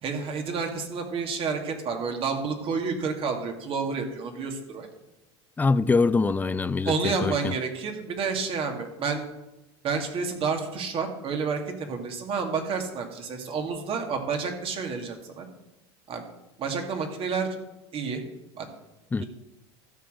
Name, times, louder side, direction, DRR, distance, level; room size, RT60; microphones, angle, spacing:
voice 1, 0.0-4.9 6.8-9.3 9.8-15.5 16.1-16.2 16.6-17.5 17.9-18.2 18.5-18.7 19.2-19.3, right 5 dB, 40° right, 2.3 m, -30 dB
voice 2, 5.6-7.5 19.1-19.2, left 4 dB, 10° left, 0.4 m, -24 dB
13.0 x 4.8 x 7.7 m
hypercardioid pair, 100°, 14 cm